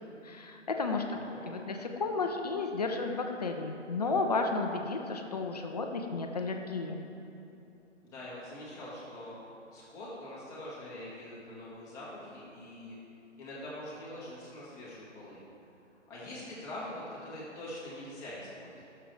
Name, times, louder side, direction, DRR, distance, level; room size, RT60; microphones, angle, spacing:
voice 1, 0.2-1.2 1.5-7.0, left 3 dB, 35° left, 4 dB, 0.6 m, -33 dB
voice 2, 1.1-1.6 8.0-9.4 9.7-13.0 13.4-15.5 16.1-18.9, left 1 dB, 10° left, -8 dB, 1.4 m, -44 dB
15.0 x 6.8 x 3.2 m, 2.7 s
figure-of-eight pair, 145°, 37 cm